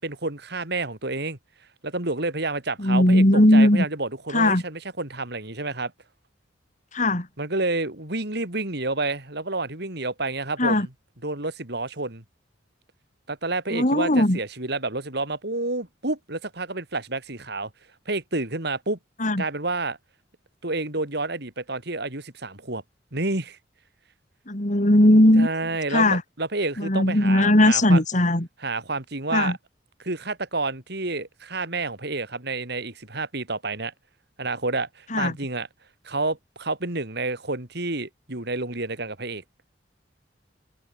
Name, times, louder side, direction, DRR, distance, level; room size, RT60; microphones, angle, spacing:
voice 1, 0.0-1.4 1.8-5.9 7.4-10.9 11.2-12.2 13.3-17.7 18.1-19.0 19.4-20.0 20.6-22.8 23.1-23.6 25.4-28.0 28.6-29.6 30.0-33.9 34.4-35.7 36.0-39.4, right 2 dB, 65° right, 4.1 m, -29 dB
voice 2, 2.8-3.9 4.3-4.6 6.9-7.3 10.6-10.9 13.7-14.4 19.2-19.4 24.5-25.5 25.9-26.2 26.8-28.5 29.3-29.6 35.1-35.3, left 1 dB, 45° left, 3.5 m, -18 dB
head